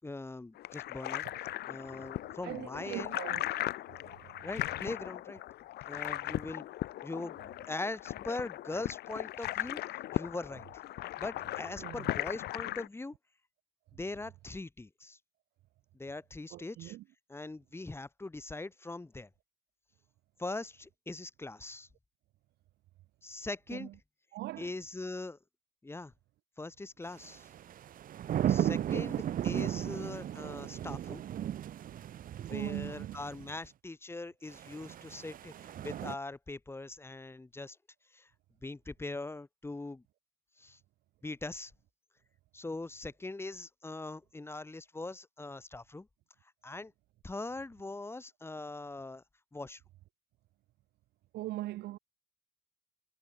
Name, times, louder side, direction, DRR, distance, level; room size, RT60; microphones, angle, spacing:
voice 1, 0.0-3.1 4.4-5.4 5.9-6.7 7.0-7.4 7.7-9.8 10.1-10.6 11.2-13.1 13.9-15.2 15.9-17.0 17.3-19.3 20.4-21.9 23.2-23.9 24.6-25.4 25.8-26.1 26.6-27.5 28.5-31.2 32.4-37.8 38.1-38.3 38.6-40.0 40.6-40.8 41.2-41.7 42.5-46.1 46.6-46.9 47.2-49.2 49.5-49.8, left 2 dB, 15° left, 6.4 m, -41 dB
sound 1, 0.6-12.9, left 15 dB, 75° left, 5.3 m, -38 dB
voice 2, 1.9-3.4 3.9-4.5 11.8-12.1 16.5-17.0 23.7-23.9 24.3-24.7 32.5-33.1 51.3-52.0, right 16 dB, 75° right, 2.7 m, -41 dB
sound 2, 27.2-33.5 34.5-36.1, right 11 dB, 55° right, 1.6 m, -35 dB
cardioid pair, 110°, 17 cm